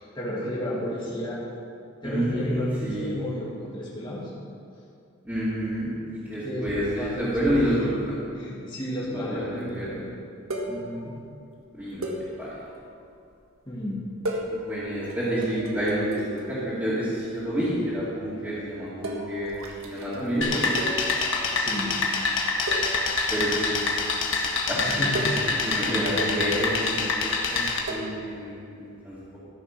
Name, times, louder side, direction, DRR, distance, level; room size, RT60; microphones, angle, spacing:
voice 1, 0.1-1.4 2.0-4.2 6.4-7.4 7.8-7.9 8.4-10.1 10.7-11.1 13.7-14.0 21.5-21.9 24.7-26.1, equal, 20° left, -7 dB, 2.5 m, -32 dB
voice 2, 2.0-3.1 5.2-8.0 9.0-10.0 11.7-12.0 12.4-12.7 14.5-20.7 23.3-24.0 24.7-24.8 25.5-27.1 27.5-29.4, equal, 10° right, -13 dB, 2.4 m, -29 dB
sound 1, 9.7-9.8 10.1-10.2 10.5-11.3 12.0-13.4 14.1-16.8 17.1-17.5 17.8-17.9 19.0-20.3 20.8-21.5 21.7-21.9 22.4-22.5 22.7-24.3 25.0-26.7 27.9-28.3, right 1 dB, 85° right, 1.6 m, -36 dB
sound 2, 20.4-27.8, left 3 dB, 65° left, 1.3 m, -26 dB
14.0 x 6.5 x 6.0 m, 2.4 s
head